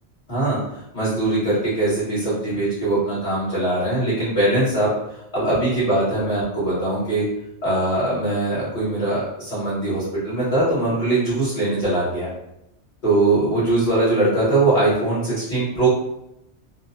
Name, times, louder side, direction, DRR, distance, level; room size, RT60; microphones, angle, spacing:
voice 1, 0.9-4.9 5.3-7.2 7.6-12.3 13.0-15.9, right 2 dB, 45° left, -12 dB, 1.3 m, -21 dB
2.7 x 2.2 x 2.5 m, 0.83 s
omnidirectional pair, 1.1 m